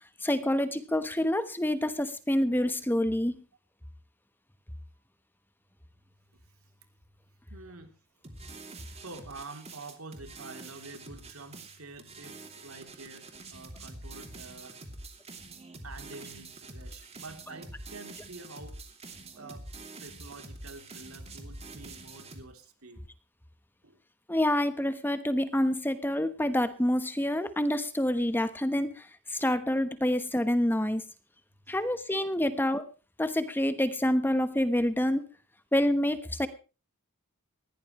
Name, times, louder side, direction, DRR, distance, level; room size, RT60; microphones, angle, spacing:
voice 1, 0.2-3.3 24.3-31.0 31.7-32.8 33.2-35.2 35.7-36.5, left 1 dB, 10° left, 11 dB, 1.1 m, -27 dB
voice 2, 7.5-7.9 9.0-14.7 15.8-18.8 19.3-19.7 20.0-23.0 23.8-24.0 31.7-31.8 32.5-32.7, right 3 dB, 75° right, 6 dB, 3.2 m, -47 dB
sound 1, 8.2-22.4, right 2 dB, 30° right, 2.8 m, -46 dB
20.5 x 16.5 x 3.1 m, 0.34 s
head